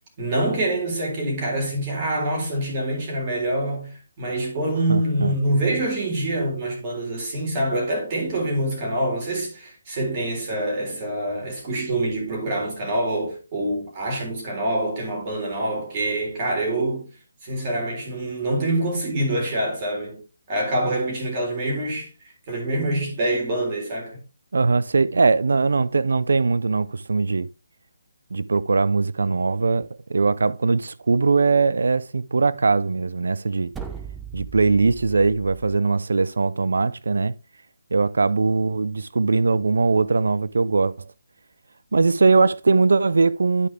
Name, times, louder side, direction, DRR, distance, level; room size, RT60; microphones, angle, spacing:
voice 1, 0.2-17.1 17.4-20.2 20.5-22.1 22.5-24.2, right 1 dB, 35° right, 3.8 m, -25 dB
voice 2, 4.9-5.3 24.5-27.5 28.3-33.7 34.3-37.3 37.9-41.1 41.9-43.7, right 4 dB, 75° right, 0.4 m, -20 dB
sound 1, 33.7-35.8, right 7 dB, 10° right, 0.6 m, -38 dB
11.0 x 4.8 x 3.3 m
hypercardioid pair, 155°, 0 cm